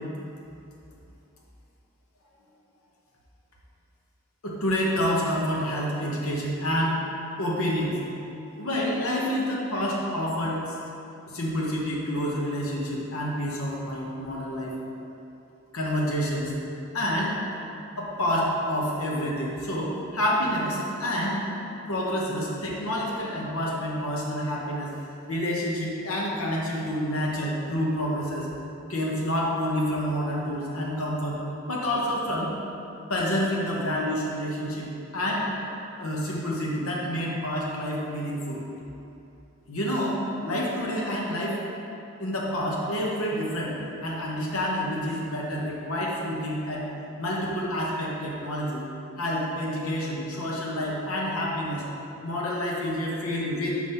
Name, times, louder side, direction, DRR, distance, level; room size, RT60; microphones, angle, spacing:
voice 1, 4.4-7.0 7.4-8.0 8.6-10.7 11.3-14.7 15.7-16.5 16.9-17.4 18.0-21.4 21.9-24.9 25.3-28.5 28.9-31.4 31.7-32.5 33.1-34.9 35.1-35.5 36.0-38.6 39.7-41.6 42.2-43.7 44.0-46.9 47.2-48.8 49.2-51.8 52.2-53.8, equal, 75° left, -4 dB, 1.0 m, -28 dB
5.6 x 4.7 x 5.6 m, 2.8 s
head